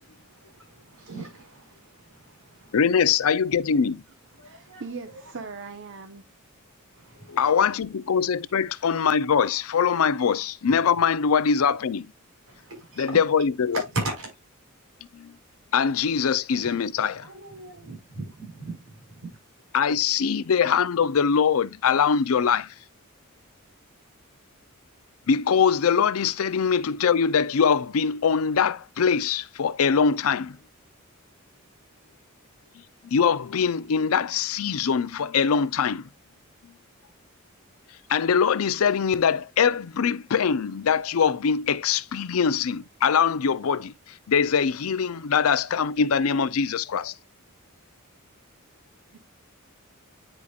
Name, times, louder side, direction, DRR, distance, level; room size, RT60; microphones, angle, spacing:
voice 1, 0.0-2.8 4.4-5.2 6.9-7.4 12.5-13.2 13.7-14.3 16.5-19.3, right 2 dB, 90° right, 5.1 m, -38 dB
voice 2, 2.7-4.0 7.3-12.1 13.0-13.8 15.1-15.4 15.7-17.3 19.7-22.8 25.3-30.6 32.7-36.1 36.6-36.8 37.9-47.2, left 6 dB, 80° left, 0.5 m, -23 dB
voice 3, 4.4-6.2 49.1-49.2, right 4 dB, 60° right, 0.8 m, -39 dB
9.7 x 5.0 x 2.3 m
head